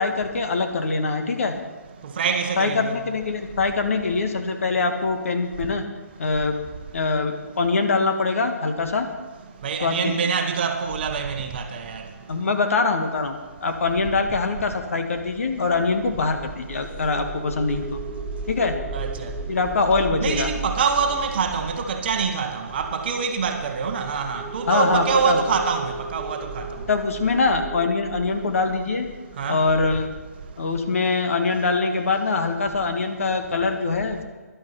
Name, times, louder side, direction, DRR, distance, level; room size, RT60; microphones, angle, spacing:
voice 1, 0.0-1.6 2.6-5.8 6.2-6.6 6.9-9.1 9.8-10.2 12.3-13.3 13.6-18.0 18.5-18.8 19.5-20.5 24.7-25.4 26.9-29.1 29.5-30.1 30.6-34.2, left 4 dB, 55° left, 1.6 m, -23 dB
voice 2, 2.2-2.9 9.6-12.0 18.9-19.3 20.2-26.6 29.4-29.6, right 6 dB, 35° right, 1.2 m, -25 dB
sound 1, 15.4-30.4, right 3 dB, 10° right, 0.9 m, -36 dB
11.5 x 11.5 x 5.7 m
figure-of-eight pair, 145°, 9 cm